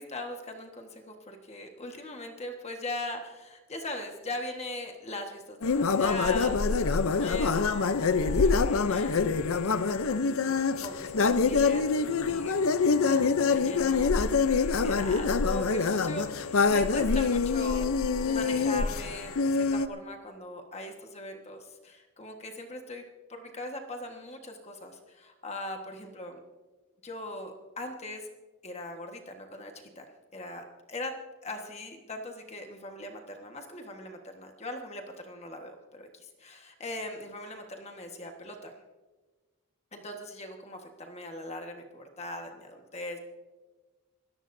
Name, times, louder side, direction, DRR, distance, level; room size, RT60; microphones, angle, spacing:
voice 1, 0.0-12.7 13.0-17.8 18.2-23.0 23.3-26.4 27.0-28.3 28.6-31.1 31.4-38.7 39.9-43.2, left 1 dB, 30° left, 3 dB, 1.4 m, -40 dB
sound 1, 5.6-19.9, left 4 dB, 70° left, 0.6 m, -25 dB
27.5 x 14.0 x 2.7 m, 1.2 s
head